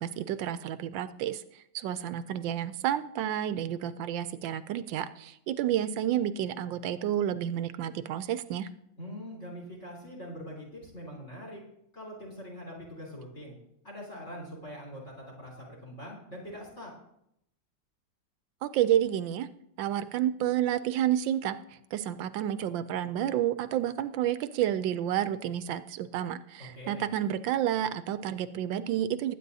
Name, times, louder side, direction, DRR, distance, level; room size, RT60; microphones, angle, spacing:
voice 1, 0.0-1.4 1.7-8.7 18.6-19.5 19.8-21.6 21.9-29.3, right 11 dB, 85° right, 13 dB, 1.3 m, -30 dB
voice 2, 9.0-11.6 11.9-13.6 13.8-16.9 26.7-27.0, equal, 35° left, -2 dB, 3.9 m, -43 dB
20.0 x 9.0 x 2.7 m, 0.78 s
omnidirectional pair, 2.0 m